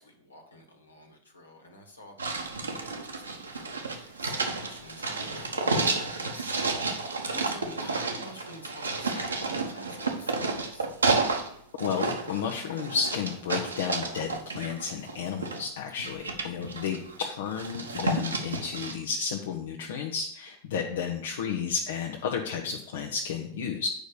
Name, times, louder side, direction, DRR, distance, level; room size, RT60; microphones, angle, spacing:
voice 1, 0.0-10.9 16.9-17.1 20.8-20.9, left 1 dB, 80° left, 4 dB, 1.7 m, -48 dB
sound 1, 2.2-11.5 11.8-15.6 16.0-17.2 17.5-18.9, right 3 dB, 80° right, 1.2 m, -31 dB
voice 2, 11.8-23.9, left 6 dB, 60° left, 0 dB, 1.0 m, -32 dB
7.8 x 5.3 x 6.6 m, 0.66 s
figure-of-eight pair, 90°, 0 cm